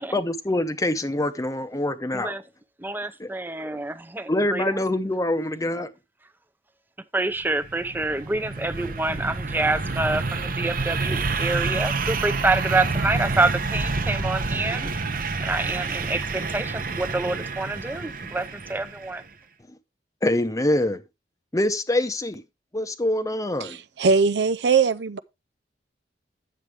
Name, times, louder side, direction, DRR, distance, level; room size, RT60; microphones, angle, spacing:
voice 1, 0.0-2.4 3.2-3.3 3.6-3.7 4.3-5.9 20.2-21.0 21.5-22.4 22.7-23.8, left 1 dB, 20° left, 0.8 m, -25 dB
voice 2, 2.8-4.8 7.1-14.9 15.4-19.2, right 2 dB, 10° right, 0.7 m, -27 dB
sound 1, 7.4-19.1, right 3 dB, 50° right, 1.0 m, -28 dB
voice 3, 23.6-25.2, right 5 dB, 70° right, 0.5 m, -21 dB
9.6 x 7.5 x 3.4 m
head